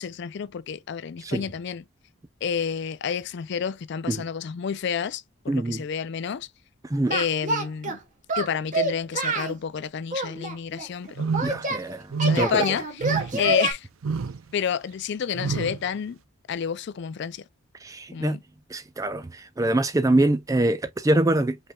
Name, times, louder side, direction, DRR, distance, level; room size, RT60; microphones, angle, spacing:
voice 1, 0.0-1.8 2.4-6.5 7.1-8.0 8.4-11.3 12.2-13.9 14.5-16.2 16.5-17.4 18.1-18.4, left 7 dB, 55° left, 0.4 m, -29 dB
voice 2, 5.5-5.8 6.8-7.1 11.4-12.6 13.3-13.4 17.8-18.4 18.7-21.6, right 1 dB, 15° right, 0.3 m, -24 dB
Singing, 7.1-8.0 8.3-9.6 10.1-11.8 12.2-13.7, right 2 dB, 35° right, 1.3 m, -27 dB
sound 1, 11.2-11.7 12.1-12.6 13.0-13.5 14.0-14.4 15.3-15.8, right 5 dB, 75° right, 0.5 m, -27 dB
5.3 x 3.4 x 2.3 m
head